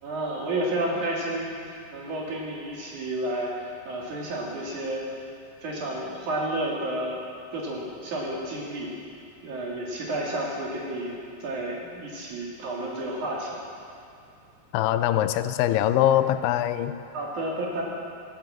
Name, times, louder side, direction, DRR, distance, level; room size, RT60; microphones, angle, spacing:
voice 1, 0.0-5.0 5.6-7.3 7.5-8.9 9.4-13.6 17.1-17.8, right 1 dB, 55° right, -4 dB, 3.4 m, -31 dB
voice 2, 14.7-17.1, left 12 dB, 85° left, 12 dB, 2.5 m, -23 dB
17.0 x 9.1 x 7.5 m, 2.5 s
omnidirectional pair, 4.5 m